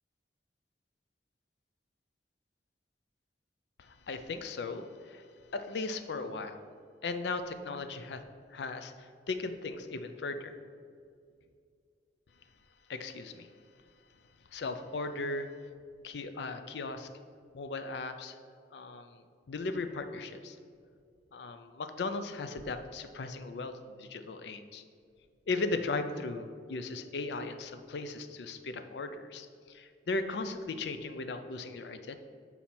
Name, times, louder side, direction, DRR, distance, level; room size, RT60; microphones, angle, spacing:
voice 1, 3.8-5.2 5.5-6.6 7.0-8.2 8.5-10.6 12.9-13.5 14.5-15.5 16.0-17.1 17.5-18.4 18.7-19.2 19.5-20.6 21.3-24.8 25.5-32.2, left 3 dB, 70° left, 9 dB, 0.5 m, -37 dB
7.6 x 4.2 x 4.3 m, 2.2 s
head